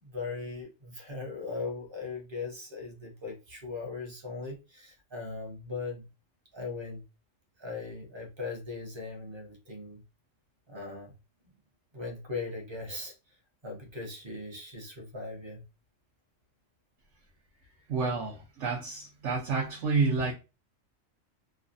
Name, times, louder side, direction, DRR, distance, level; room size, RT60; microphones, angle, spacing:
voice 1, 0.0-6.1 6.5-7.0 7.6-10.0 10.7-11.2 11.9-13.1 13.6-15.6 19.6-19.7, left 3 dB, 25° right, 0.7 m, -39 dB
voice 2, 17.9-20.3, right 4 dB, 70° right, 1.0 m, -29 dB
3.2 x 2.1 x 2.5 m
omnidirectional pair, 1.3 m